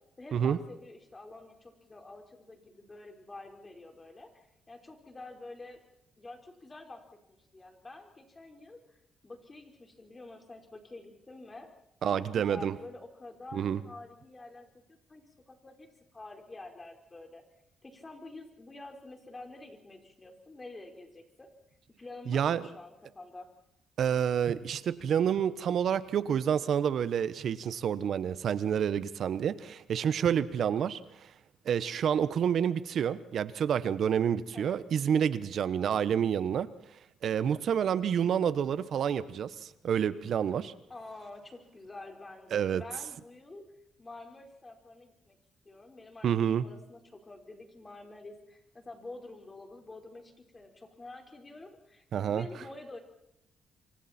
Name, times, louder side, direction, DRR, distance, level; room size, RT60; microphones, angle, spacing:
voice 1, 0.2-5.8 6.2-9.0 9.2-11.7 12.1-15.9 16.1-17.4 17.8-21.5 22.0-23.5 34.5-34.8 40.9-43.6 44.0-45.4 45.6-53.0, left 2 dB, 25° left, 3 dB, 4.6 m, -48 dB
voice 2, 12.0-12.7 13.5-13.8 22.3-22.6 24.0-31.0 31.6-36.7 37.2-40.7 42.5-42.8 46.2-46.7 52.1-52.5, right 8 dB, 65° right, 14 dB, 1.1 m, -28 dB
28.0 x 24.5 x 4.4 m, 0.79 s
cardioid pair, 90°, 0 cm